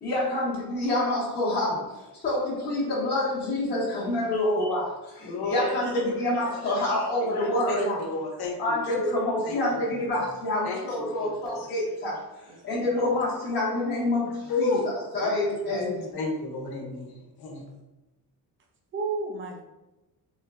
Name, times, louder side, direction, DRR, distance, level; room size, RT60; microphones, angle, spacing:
voice 1, 0.0-8.0 8.6-12.2 12.6-14.7 15.1-16.1, left 1 dB, 25° left, -8 dB, 0.8 m, -27 dB
voice 2, 5.2-6.7 7.2-8.6 8.8-8.9 9.4-9.6 9.9-10.0 10.6-11.3 11.6-11.7 14.5-15.3 16.1-17.1 17.4-17.6, left 3 dB, 75° left, 1 dB, 0.7 m, -32 dB
voice 3, 12.5-12.9 18.9-19.6, right 4 dB, 30° right, 2 dB, 0.5 m, -32 dB
3.1 x 2.1 x 2.3 m, 0.99 s
cardioid pair, 100°, 39 cm